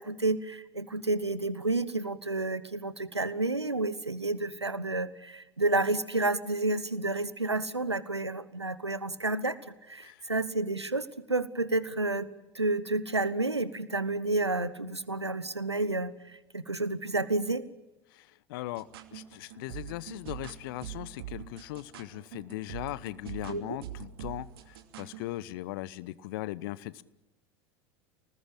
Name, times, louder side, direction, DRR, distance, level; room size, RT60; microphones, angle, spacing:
voice 1, 0.0-9.6 9.9-12.3 12.5-17.6 23.5-23.8, right 2 dB, 90° right, 15 dB, 1.2 m, -30 dB
voice 2, 18.1-27.0, left 17 dB, 60° left, 20 dB, 1.0 m, -39 dB
sound 1, 18.7-25.4, right 11 dB, 65° right, 2.7 m, -44 dB
29.5 x 20.0 x 8.8 m, 1.0 s
figure-of-eight pair, 75°, 14 cm